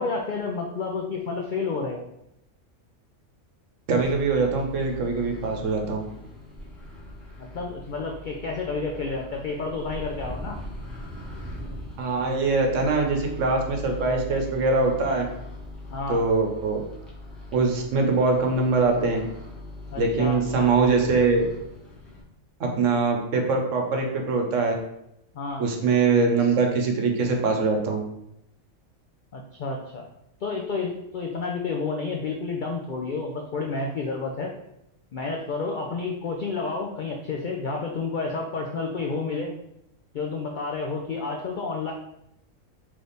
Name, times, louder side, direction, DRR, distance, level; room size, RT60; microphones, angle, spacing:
voice 1, 0.0-2.0 7.4-10.6 15.9-16.2 19.9-20.4 25.3-25.7 29.3-30.1 30.4-34.5 35.1-39.5 40.1-41.9, left 4 dB, 80° left, 1 dB, 0.4 m, -30 dB
Microwave oven, 3.9-22.2, left 1 dB, ahead, 1.0 m, -41 dB
voice 2, 3.9-6.0 12.0-15.2 16.1-16.8 17.5-19.2 20.0-21.4 22.6-24.8 25.6-28.0, right 4 dB, 65° right, 2 dB, 1.1 m, -23 dB
3.4 x 3.2 x 4.0 m, 0.81 s
omnidirectional pair, 1.4 m